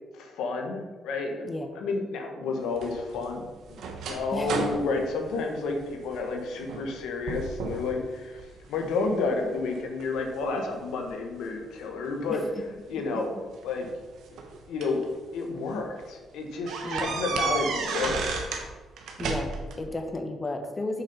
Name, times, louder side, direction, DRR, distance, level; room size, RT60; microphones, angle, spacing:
voice 1, 0.1-1.5 1.7-3.4 3.7-12.4 12.9-13.3 13.6-13.9 14.3-14.4 14.7-18.5, left 3 dB, 85° left, 3 dB, 1.1 m, -31 dB
sound 1, 2.8-6.2 6.6-7.0 7.3-7.9 8.4-9.1 9.7-11.1 12.3-12.4 13.6-15.0 15.6-15.7 16.0-16.1 16.7-18.7 19.0-19.8, right 4 dB, 75° right, 1.0 m, -32 dB
voice 2, 4.3-4.7 12.3-12.4 16.8-17.2 19.2-21.0, left 2 dB, 25° left, 5 dB, 0.9 m, -33 dB
6.9 x 4.3 x 5.4 m, 1.3 s
cardioid pair, 90°, 0 cm